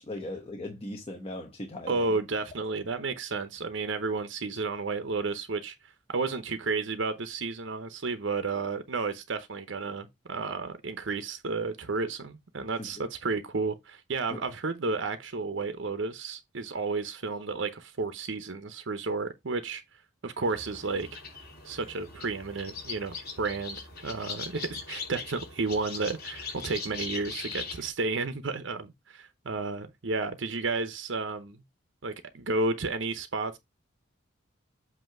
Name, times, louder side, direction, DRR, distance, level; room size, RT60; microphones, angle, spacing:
voice 1, 0.0-2.2 12.8-12.9 14.3-14.4, left 1 dB, 30° left, 1.0 m, -38 dB
voice 2, 1.9-5.8 6.1-19.8 20.2-21.1 21.6-31.6 32.0-33.6, right 3 dB, 65° right, 0.8 m, -32 dB
sound 1, 20.4-27.9, left 5 dB, 50° left, 3.2 m, -40 dB
7.9 x 2.8 x 5.8 m
head